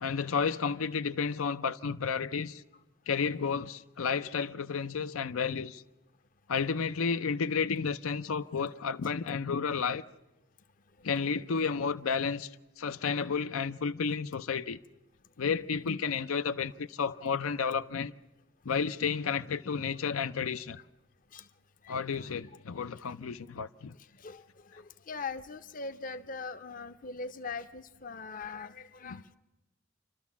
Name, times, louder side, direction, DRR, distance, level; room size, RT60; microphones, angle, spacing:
voice 1, 0.0-2.6 3.1-5.8 6.5-10.0 11.0-12.5 12.8-14.8 15.4-18.1 18.7-20.8 21.9-24.0, left 5 dB, 85° left, 0.6 m, -31 dB
voice 2, 24.2-29.3, left 4 dB, 40° left, 0.6 m, -41 dB
28.5 x 13.0 x 7.2 m
head